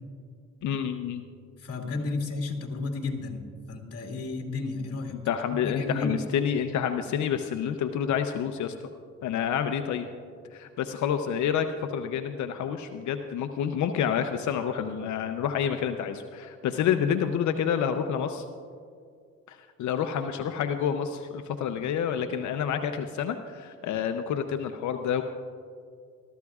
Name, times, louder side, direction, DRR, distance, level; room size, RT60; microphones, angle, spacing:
voice 1, 0.6-1.2 5.3-8.7 9.2-10.1 10.5-18.4 19.5-25.2, left 8 dB, 70° left, 7 dB, 0.7 m, -28 dB
voice 2, 1.6-5.2 5.6-6.2, left 3 dB, 50° left, 1 dB, 2.1 m, -32 dB
21.0 x 13.5 x 2.4 m, 2.3 s
cardioid pair, 90°, 30 cm